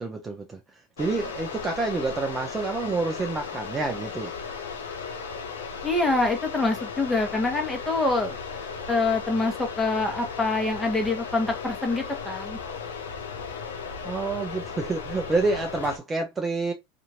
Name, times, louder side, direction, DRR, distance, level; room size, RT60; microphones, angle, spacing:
voice 1, 0.0-4.3 14.0-16.7, right 3 dB, 20° right, 0.6 m, -28 dB
sound 1, 1.0-16.0, left 5 dB, 85° left, 0.6 m, -36 dB
voice 2, 5.8-8.4 8.9-12.6, left 3 dB, 10° left, 1.1 m, -25 dB
2.8 x 2.5 x 2.8 m
hypercardioid pair, 95°, 0 cm